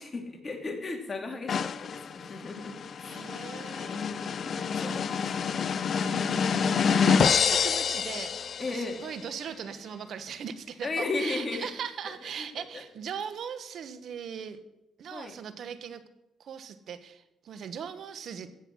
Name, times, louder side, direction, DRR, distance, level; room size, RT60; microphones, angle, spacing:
voice 1, 0.0-2.7 3.0-3.2 3.8-6.0 8.6-9.0 10.8-11.7 12.0-12.8 15.1-15.3, left 3 dB, 35° left, 4 dB, 2.4 m, -36 dB
sound 1, 1.5-9.1, left 6 dB, 50° left, 0.5 m, -27 dB
voice 2, 3.0-4.3 4.8-5.0 6.0-14.6 15.0-16.0 16.4-18.5, right 7 dB, 65° right, 11 dB, 1.3 m, -39 dB
15.5 x 7.8 x 6.3 m, 0.89 s
cardioid pair, 90°, 0 cm